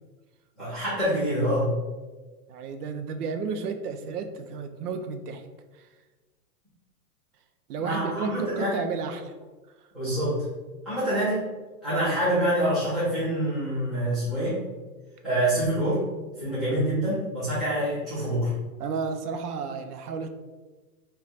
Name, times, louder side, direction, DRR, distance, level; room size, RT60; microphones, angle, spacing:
voice 1, 0.6-1.7 7.8-8.8 9.9-10.4 10.9-11.4 11.8-14.6 15.2-16.0 16.4-18.5, right 1 dB, ahead, -14 dB, 0.3 m, -26 dB
voice 2, 2.5-5.5 5.7-5.9 7.7-9.3 9.8-9.9 18.8-20.3, right 5 dB, 80° right, 7 dB, 0.6 m, -32 dB
3.2 x 2.2 x 4.0 m, 1.3 s
hypercardioid pair, 140°, 45 cm